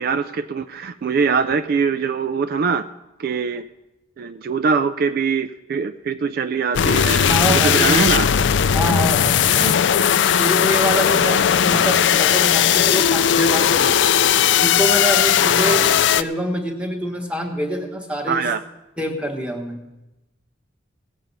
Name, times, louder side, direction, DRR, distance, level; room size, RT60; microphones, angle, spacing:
voice 1, 0.0-2.8 3.2-3.6 4.2-8.3 9.5-9.8 18.3-18.6, right 5 dB, 50° right, 11 dB, 0.3 m, -22 dB
very intense hell, 6.7-16.2, left 9 dB, 70° left, 0.4 m, -17 dB
voice 2, 7.3-8.1 8.7-9.5 10.4-14.1 14.6-15.8 16.1-18.4 19.0-19.8, equal, 5° right, 3 dB, 1.4 m, -25 dB
18.0 x 7.7 x 5.5 m, 1.0 s
head